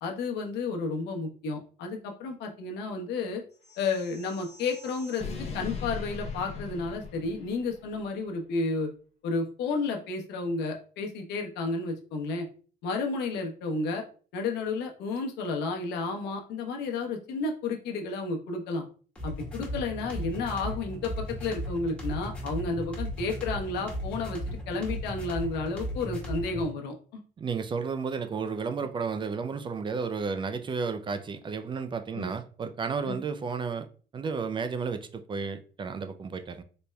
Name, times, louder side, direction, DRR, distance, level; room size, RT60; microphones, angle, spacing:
voice 1, 0.0-3.4 3.8-8.9 9.2-12.5 12.8-14.0 14.3-18.8 19.2-27.2 32.1-32.3 33.1-33.2, left 3 dB, 80° left, 0.9 m, -32 dB
sound 1, 3.6-7.9, left 4 dB, 40° left, 0.8 m, -40 dB
sound 2, 19.2-26.7, equal, 5° left, 1.8 m, -36 dB
voice 2, 27.4-33.9 34.1-36.6, right 5 dB, 30° right, 0.4 m, -32 dB
4.3 x 3.2 x 2.2 m
cardioid pair, 110°, 17 cm